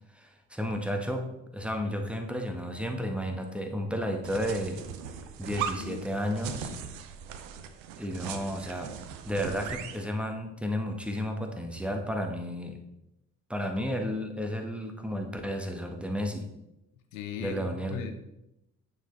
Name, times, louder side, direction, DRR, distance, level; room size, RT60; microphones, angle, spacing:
voice 1, 0.1-1.3 1.5-4.9 5.4-6.7 8.0-8.9 9.2-12.8 13.5-16.4 17.4-18.0, equal, 5° right, 1.6 m, -32 dB
sound 1, 4.2-10.1, right 8 dB, 70° right, 0.7 m, -39 dB
voice 2, 6.5-6.9 17.1-17.6 17.9-18.1, left 8 dB, 75° left, 0.8 m, -38 dB
9.3 x 6.6 x 4.0 m
figure-of-eight pair, 40°, 40 cm